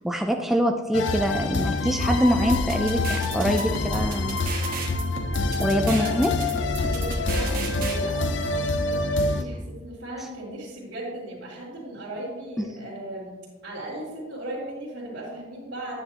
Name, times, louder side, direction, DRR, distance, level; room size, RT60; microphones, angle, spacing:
voice 1, 0.0-4.4 5.6-6.3 12.6-12.7, equal, ahead, 3 dB, 0.4 m, -24 dB
sound 1, 0.9-9.4, left 3 dB, 70° left, 0.5 m, -26 dB
sound 2, 2.3-8.0, right 3 dB, 50° right, 1.2 m, -34 dB
voice 2, 6.8-13.3 13.6-16.0, right 1 dB, 80° right, -10 dB, 2.8 m, -37 dB
9.8 x 8.9 x 2.9 m, 1.3 s
head